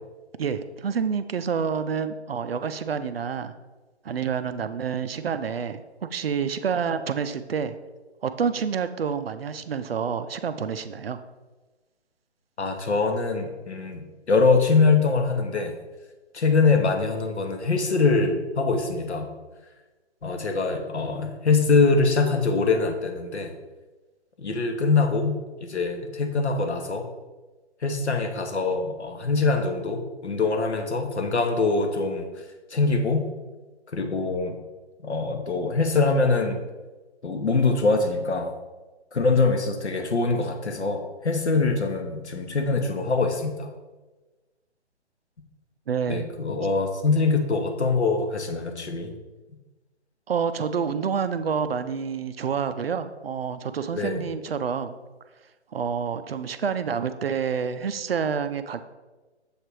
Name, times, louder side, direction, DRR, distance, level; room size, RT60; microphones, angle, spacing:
voice 1, 0.4-3.5 4.0-7.8 8.2-11.2 45.9-46.3 50.3-54.9 55.7-58.8, right 6 dB, 60° right, 11 dB, 0.5 m, -28 dB
voice 2, 12.6-15.7 16.3-19.3 20.2-23.5 24.4-27.1 27.8-32.3 32.7-33.3 33.9-34.5 35.0-36.6 37.2-38.5 39.1-43.7 46.1-49.1 53.9-54.3, left 4 dB, 70° left, 4 dB, 1.0 m, -23 dB
7.1 x 3.3 x 4.4 m, 1.2 s
figure-of-eight pair, 145°, 34 cm